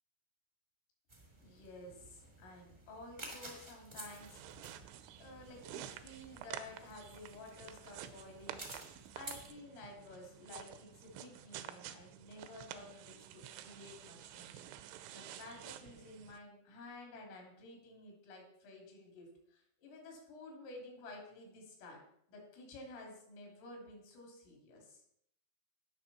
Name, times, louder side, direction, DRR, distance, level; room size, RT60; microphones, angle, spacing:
sound 1, 1.1-9.5, right 1 dB, 65° right, 0.4 m, -53 dB
voice 1, 1.4-4.5 5.2-8.6 9.2-22.0 22.3-25.0, left 2 dB, 75° left, 0 dB, 5.7 m, -52 dB
sound 2, 4.0-16.4, right 11 dB, 85° right, 3.0 m, -50 dB
18.5 x 6.5 x 4.3 m, 0.72 s
omnidirectional pair, 5.8 m